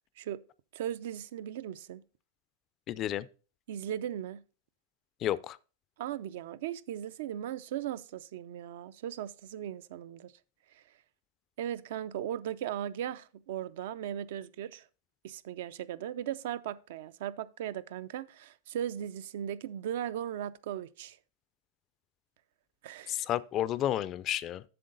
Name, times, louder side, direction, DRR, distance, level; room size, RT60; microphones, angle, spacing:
voice 1, 0.7-2.0 3.7-4.4 6.0-10.3 10.7-10.8 11.6-14.8 15.2-21.2 22.8-23.3, right 10 dB, 65° right, 0.4 m, -37 dB
voice 2, 2.9-3.3 5.2-5.6 23.1-24.6, left 12 dB, 30° left, 0.3 m, -31 dB
7.7 x 6.6 x 3.8 m
supercardioid pair, 150°, 0 cm